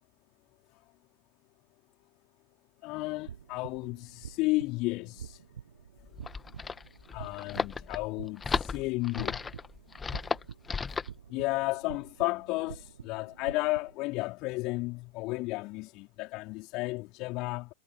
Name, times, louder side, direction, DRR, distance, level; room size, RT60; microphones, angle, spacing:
voice 1, 2.8-5.4 7.1-9.5 11.3-17.7, left 23 dB, 40° left, 4.5 m, -33 dB
sound 1, 3.1-13.9, right 8 dB, 65° right, 7.5 m, -48 dB
sound 2, 6.0-11.2, left 5 dB, 15° left, 1.9 m, -35 dB
figure-of-eight pair, 90°, 0 cm